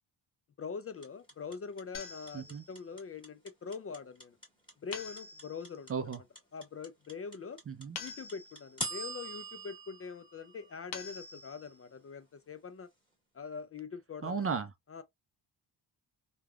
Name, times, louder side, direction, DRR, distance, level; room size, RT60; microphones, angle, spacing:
voice 1, 0.6-4.4 4.8-5.9 6.5-7.6 8.0-12.9 13.3-14.5 14.9-15.0, left 5 dB, 35° left, 0.4 m, -43 dB
sound 1, 1.0-11.2, right 1 dB, 10° left, 1.5 m, -43 dB
sound 2, 1.9-2.9 4.9-5.8 8.0-8.9 10.9-11.8, left 5 dB, 70° left, 0.9 m, -46 dB
voice 2, 2.3-2.6 5.9-6.2 7.7-8.0 14.2-14.7, right 5 dB, 35° right, 0.4 m, -35 dB
3.2 x 2.3 x 2.3 m
cardioid pair, 80°, 45 cm